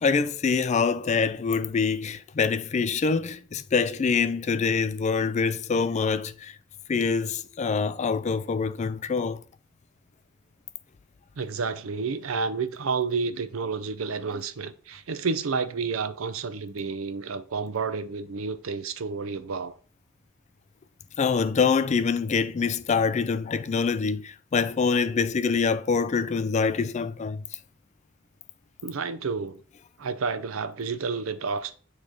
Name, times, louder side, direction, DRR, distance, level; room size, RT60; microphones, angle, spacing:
voice 1, 0.0-6.5 6.9-9.4 21.2-27.4, left 5 dB, 35° left, 0.3 m, -25 dB
voice 2, 11.4-19.7 28.8-29.6 30.0-31.8, right 5 dB, 80° right, 0.6 m, -30 dB
8.6 x 3.2 x 3.7 m
head